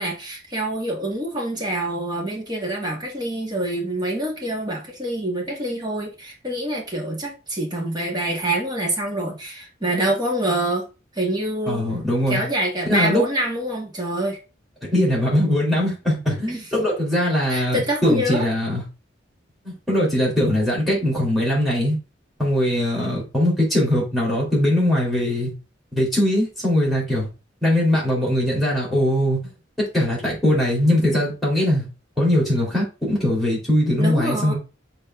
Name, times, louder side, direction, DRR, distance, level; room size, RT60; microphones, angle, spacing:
voice 1, 0.0-10.8 11.1-11.8 12.3-14.4 16.5-16.6 17.5-18.5 34.0-34.5, right 1 dB, 20° right, -1 dB, 2.0 m, -26 dB
voice 2, 11.7-12.4 12.9-13.2 14.9-18.8 19.6-22.0 22.4-25.5 25.9-27.3 27.6-29.4 29.8-31.9 32.2-34.5, left 1 dB, ahead, -5 dB, 4.0 m, -21 dB
6.8 x 4.4 x 3.8 m, 0.30 s
head